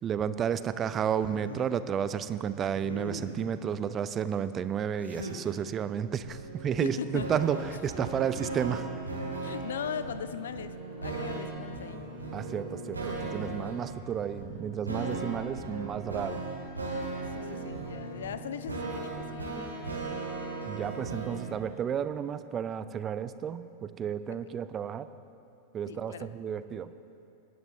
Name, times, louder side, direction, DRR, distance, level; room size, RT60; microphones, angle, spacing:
voice 1, 0.0-8.9 12.3-16.4 20.7-25.1 25.7-26.9, right 8 dB, 25° right, 14 dB, 0.5 m, -32 dB
sound 1, 1.2-1.8 2.6-3.6 5.0-5.5 7.5-7.9, equal, 85° left, 1.5 m, -41 dB
sound 2, 6.2-21.5, right 3 dB, 80° right, 2.3 m, -37 dB
voice 2, 6.8-7.3 9.4-12.0 17.3-19.9 25.9-26.3, left 8 dB, 65° left, 12 dB, 0.5 m, -39 dB
19.0 x 10.5 x 4.0 m, 2.9 s
figure-of-eight pair, 90°, 0 cm